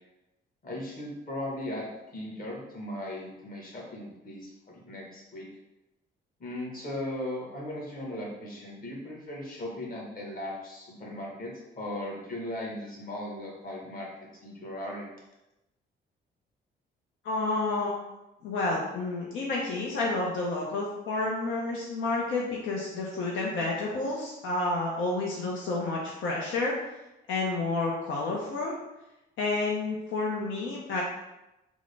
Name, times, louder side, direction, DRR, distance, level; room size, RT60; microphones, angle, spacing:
voice 1, 0.6-1.9 2.1-5.5 6.4-14.1 14.4-15.1, left 1 dB, 45° left, -3 dB, 1.2 m, -37 dB
voice 2, 17.2-17.9 18.4-26.7 27.3-28.8 29.4-31.0, left 2 dB, 80° left, -3 dB, 0.6 m, -30 dB
3.6 x 2.0 x 3.3 m, 0.94 s
cardioid pair, 90°, 20 cm